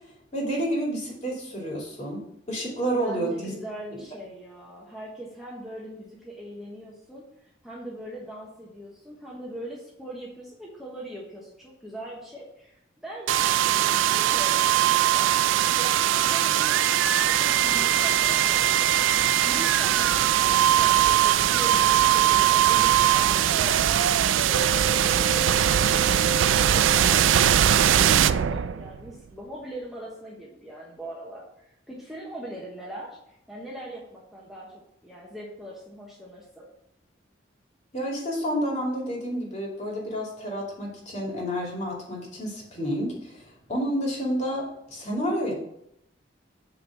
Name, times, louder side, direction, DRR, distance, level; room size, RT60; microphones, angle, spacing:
voice 1, 0.3-2.2 2.5-3.5 37.9-45.5, equal, 35° left, -2 dB, 2.5 m, -29 dB
voice 2, 3.0-15.4 15.8-24.1 24.4-36.7, right 1 dB, ahead, -5 dB, 1.2 m, -41 dB
sound 1, 13.3-29.1, right 10 dB, 85° right, 0.4 m, -21 dB
8.4 x 4.0 x 5.8 m, 0.77 s
head